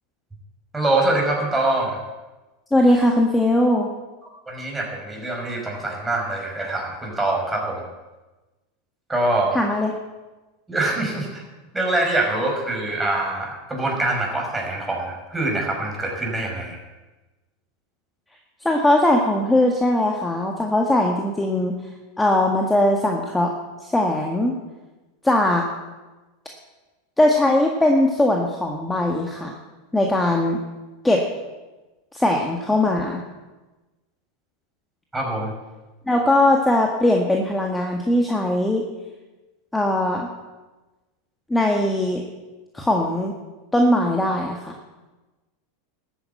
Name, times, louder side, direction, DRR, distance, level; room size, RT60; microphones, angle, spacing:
voice 1, 0.7-2.0 4.5-7.9 9.1-9.5 10.7-11.4 11.7-16.8 35.1-35.5, right 2 dB, 10° right, 0 dB, 5.4 m, -24 dB
voice 2, 2.7-3.9 9.5-9.9 18.7-21.7 22.2-23.5 23.8-24.6 25.2-25.6 27.2-29.5 29.9-30.6 31.0-31.2 32.1-33.2 36.1-38.8 39.7-40.3 41.5-42.2 42.7-43.3 43.7-44.7, left 1 dB, 10° left, 1 dB, 1.7 m, -20 dB
13.0 x 9.6 x 8.1 m, 1.2 s
hypercardioid pair, 95°, 0 cm